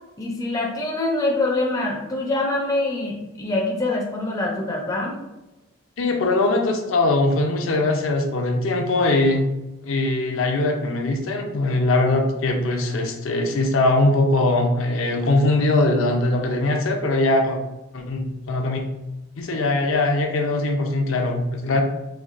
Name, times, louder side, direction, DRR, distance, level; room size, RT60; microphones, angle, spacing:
voice 1, 0.2-5.2, left 2 dB, 15° left, -1 dB, 0.4 m, -24 dB
voice 2, 6.0-9.5 9.8-17.6 17.9-18.8 19.4-21.8, left 2 dB, 70° left, 3 dB, 0.5 m, -21 dB
4.4 x 2.5 x 2.4 m, 1.0 s
head